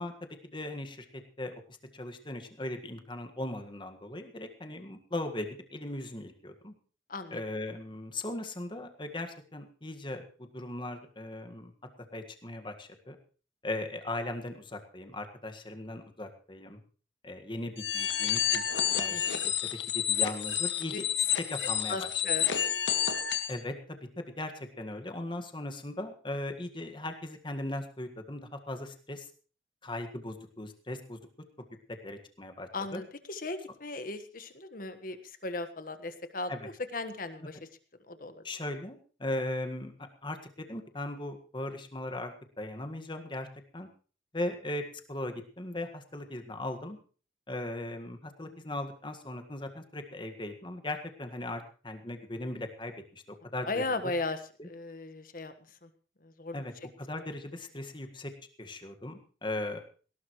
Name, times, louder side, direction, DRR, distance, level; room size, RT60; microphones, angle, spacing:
voice 1, 0.0-1.5 1.9-6.7 7.3-10.2 10.5-11.7 12.1-13.2 13.6-16.8 17.2-19.5 19.9-21.0 21.5-22.2 23.5-29.3 29.8-31.2 32.0-33.0 36.5-36.7 38.4-39.9 40.2-43.5 43.7-43.9 44.3-44.8 45.1-47.0 47.5-53.2 53.5-54.0 54.6-54.7 56.5-56.7 57.0-58.3 58.6-59.8, left 1 dB, 25° left, 5 dB, 1.7 m, -38 dB
voice 2, 7.1-7.4 19.1-19.2 21.9-22.5 32.7-37.6 38.1-38.4 48.5-48.7 53.6-54.4 54.6-55.5 55.8-55.9 56.2-56.6, left 3 dB, 50° left, 10 dB, 1.5 m, -36 dB
sound 1, 17.8-23.6, left 10 dB, 85° left, 1.8 m, -29 dB
19.0 x 17.5 x 3.2 m, 0.39 s
head